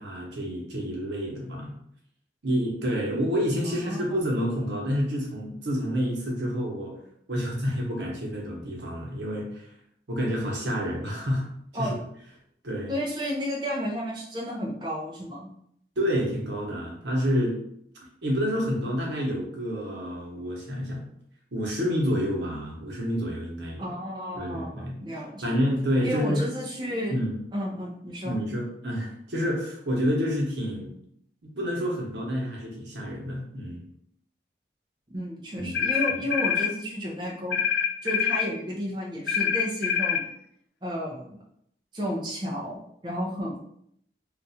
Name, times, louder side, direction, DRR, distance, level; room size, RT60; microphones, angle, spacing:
voice 1, 0.0-1.7 2.4-6.9 7.3-9.7 10.1-11.5 11.8-11.9 12.6-12.9 16.0-17.6 18.2-21.0 21.5-23.8 24.3-24.9 25.4-26.4 27.1-27.4 28.2-30.9 31.4-33.8 35.6-35.8, equal, 80° right, -2 dB, 0.9 m, -28 dB
voice 2, 3.6-4.2 11.7-12.0 12.9-15.5 23.8-25.6 26.0-27.2 27.5-28.4 35.1-37.6 38.0-40.3 40.8-41.4 41.9-43.6, equal, 25° right, -4 dB, 0.5 m, -32 dB
sound 1, 35.7-36.7 37.5-38.5 39.3-40.3, left 8 dB, 70° left, 0.3 m, -25 dB
2.5 x 2.3 x 4.1 m, 0.70 s
head